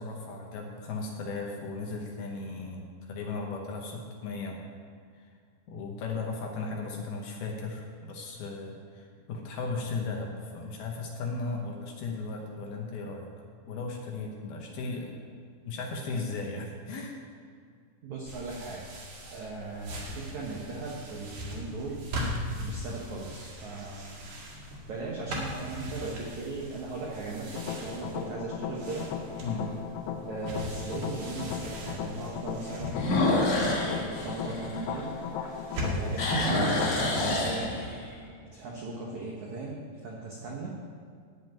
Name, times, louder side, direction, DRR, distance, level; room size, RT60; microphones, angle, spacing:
voice 1, 0.0-4.6 5.2-5.3 5.7-13.3 13.6-15.1 15.6-17.2 29.4-29.7, left 3 dB, 70° left, 0 dB, 2.6 m, -36 dB
voice 2, 18.0-18.8 19.3-22.1 22.6-24.2 24.9-29.1 30.3-33.3 34.2-35.1 35.8-37.7 38.4-40.7, right 3 dB, 75° right, -3 dB, 1.7 m, -38 dB
sound 1, 18.3-36.3, equal, 50° right, 2.7 m, -40 dB
sound 2, 19.3-19.9 20.6-20.7 25.9-26.4 26.9-27.0 27.5-27.6 27.9-28.0 29.5-29.6 32.9-35.4 35.8-38.1, left 1 dB, 50° left, 2.6 m, -28 dB
sound 3, 27.5-37.2, left 7 dB, 90° left, 3.3 m, -37 dB
13.0 x 5.3 x 9.1 m, 2.1 s
omnidirectional pair, 5.3 m